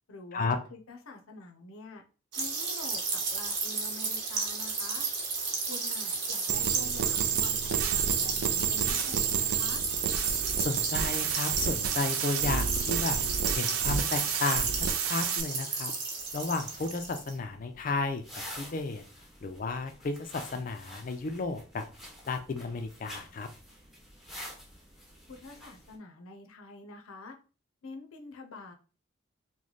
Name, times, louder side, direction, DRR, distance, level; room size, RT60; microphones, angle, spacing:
voice 1, 0.1-2.0 2.4-5.1 5.7-9.8 25.3-27.4 27.8-28.7, left 3 dB, 85° left, 4 dB, 0.7 m, -46 dB
sound 1, 2.3-17.3, right 4 dB, 55° right, 0.9 m, -33 dB
sound 2, 6.5-15.4, right 8 dB, 85° right, 0.4 m, -30 dB
voice 2, 10.6-13.2 13.5-15.9 16.3-18.2 18.5-19.0 19.4-21.9 22.3-23.5, left 3 dB, 40° left, 6 dB, 0.3 m, -33 dB
sound 3, 16.2-26.0, equal, ahead, 0.7 m, -48 dB
3.1 x 2.1 x 3.9 m, 0.36 s
head